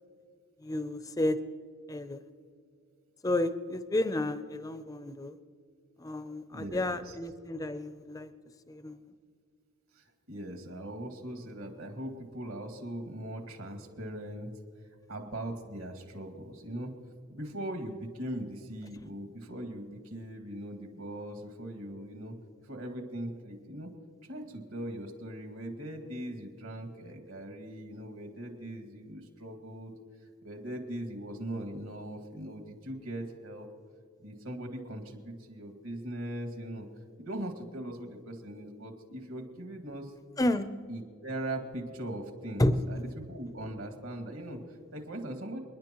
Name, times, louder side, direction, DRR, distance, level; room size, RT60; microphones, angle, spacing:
voice 1, 0.6-1.4 1.9-2.2 3.2-5.4 6.0-8.3 8.7-9.0 40.4-40.7 42.6-42.8, left 1 dB, 15° left, 11 dB, 0.4 m, -31 dB
voice 2, 6.5-7.2 9.9-14.5 15.1-16.9 17.3-22.3 22.6-23.9 24.2-29.9 30.2-33.7 34.2-36.9 37.2-40.1 40.9-45.6, right 1 dB, 70° right, 3 dB, 2.1 m, -40 dB
29.5 x 10.5 x 3.0 m, 2.1 s
head